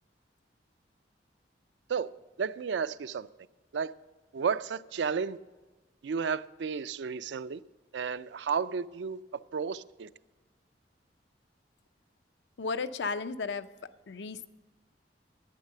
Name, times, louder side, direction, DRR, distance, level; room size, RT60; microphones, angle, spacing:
voice 1, 2.4-3.3 3.7-3.9 4.3-5.4 6.0-7.6 7.9-9.2 9.5-10.1, right 6 dB, 90° right, 0.4 m, -32 dB
voice 2, 12.6-13.7 14.1-14.5, left 4 dB, 85° left, 0.5 m, -34 dB
11.5 x 8.9 x 6.6 m
head